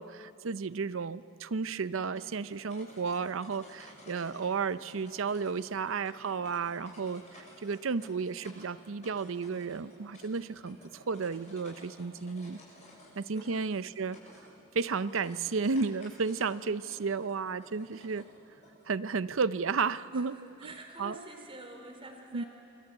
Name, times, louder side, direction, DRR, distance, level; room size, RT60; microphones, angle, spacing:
voice 1, 0.0-12.6 13.2-14.2 14.7-18.3 18.9-20.4 20.6-20.7 21.0-21.2 22.3-22.4, right 5 dB, 70° right, 15 dB, 0.6 m, -33 dB
sound 1, 1.8-18.8, left 1 dB, 35° left, 7.1 m, -55 dB
voice 2, 20.1-22.5, right 2 dB, 25° right, 3 dB, 3.9 m, -48 dB
27.5 x 23.5 x 8.2 m, 2.8 s
head